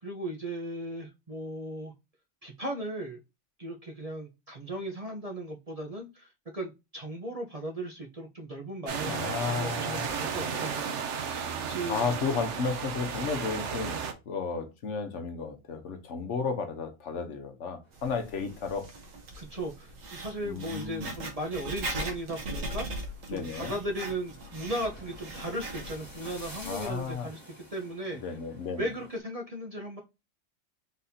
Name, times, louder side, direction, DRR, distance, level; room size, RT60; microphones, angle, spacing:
voice 1, 0.0-1.9 2.4-3.2 3.6-10.9 11.7-12.0 19.4-22.9 23.3-28.2 28.8-30.0, right 1 dB, 35° right, 0.7 m, -37 dB
sound 1, 8.9-14.1, right 6 dB, 65° right, 1.0 m, -33 dB
voice 2, 9.0-10.5 11.9-14.0 14.3-18.9 20.4-21.1 23.3-23.8 26.7-27.3 28.2-28.9, left 5 dB, 70° left, 1.2 m, -33 dB
sound 2, 17.8-29.2, equal, 35° left, 2.4 m, -52 dB
Writing, 17.9-27.1, right 1 dB, 85° right, 1.4 m, -40 dB
4.1 x 4.0 x 2.7 m
omnidirectional pair, 1.3 m